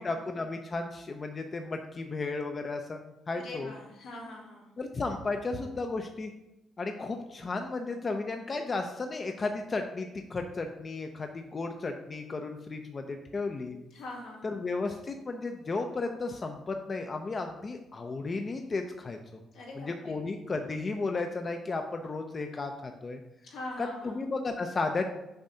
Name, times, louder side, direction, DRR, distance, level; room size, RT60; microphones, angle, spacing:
voice 1, 0.0-3.7 4.8-6.3 6.8-13.7 14.4-19.4 19.8-23.2 23.8-25.0, left 3 dB, 35° left, 5 dB, 0.5 m, -34 dB
voice 2, 3.3-4.7 13.9-14.5 19.5-20.2 23.4-24.2, left 2 dB, 85° left, -4 dB, 2.1 m, -43 dB
6.8 x 2.6 x 5.5 m, 0.92 s
cardioid pair, 90°, 0 cm